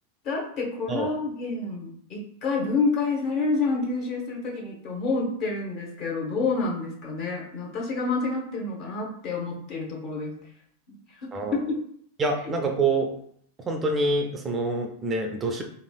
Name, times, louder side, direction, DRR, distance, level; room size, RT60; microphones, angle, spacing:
voice 1, 0.2-10.3 11.1-11.8 12.4-12.5, left 3 dB, 40° left, 0 dB, 0.8 m, -28 dB
voice 2, 12.2-13.1 13.7-15.6, right 2 dB, 20° right, 3 dB, 0.3 m, -26 dB
3.1 x 2.4 x 2.3 m, 0.65 s
figure-of-eight pair, 90°, 0 cm